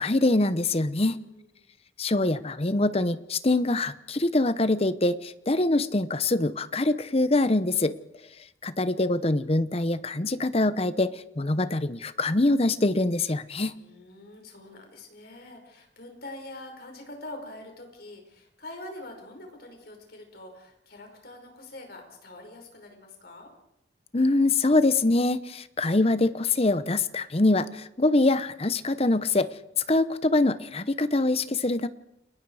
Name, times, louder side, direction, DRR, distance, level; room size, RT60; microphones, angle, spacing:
voice 1, 0.0-1.2 2.0-7.9 8.6-13.8 24.1-29.5 29.9-31.9, left 2 dB, 30° left, 14 dB, 0.8 m, -24 dB
voice 2, 1.0-1.7 13.7-23.5, left 1 dB, 50° left, 3 dB, 5.6 m, -45 dB
29.5 x 20.5 x 4.9 m, 0.81 s
head